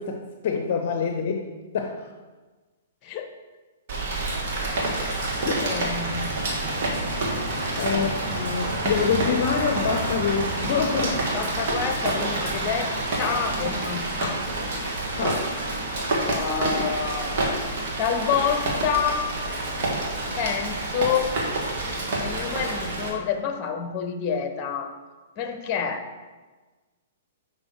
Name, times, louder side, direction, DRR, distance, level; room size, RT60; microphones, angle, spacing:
voice 1, 0.0-2.1 5.5-5.6 7.8-11.2 15.2-15.5, left 6 dB, 55° left, 5 dB, 0.6 m, -26 dB
Rain, 3.9-23.1, right 2 dB, 55° right, 1.8 m, -28 dB
voice 2, 4.8-5.2 5.6-6.3 7.6-7.7 10.7-10.9 11.3-12.9 13.2-14.4 16.2-17.5 18.0-19.3 20.4-21.3 22.2-25.0 25.4-26.2, left 7 dB, 35° left, 6 dB, 0.9 m, -28 dB
6.1 x 5.7 x 4.6 m, 1.3 s
hypercardioid pair, 115°, 0 cm